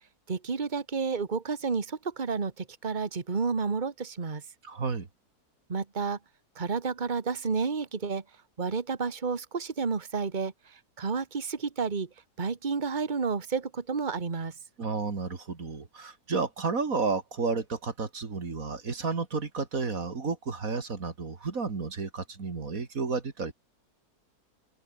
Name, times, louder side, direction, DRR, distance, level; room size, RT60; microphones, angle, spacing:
voice 1, 0.3-4.4 5.7-6.2 6.5-8.2 8.6-14.5, right 5 dB, 30° right, 1.7 m, -31 dB
voice 2, 4.6-5.1 14.8-23.5, right 4 dB, 55° right, 2.7 m, -32 dB
open air
omnidirectional pair, 1.7 m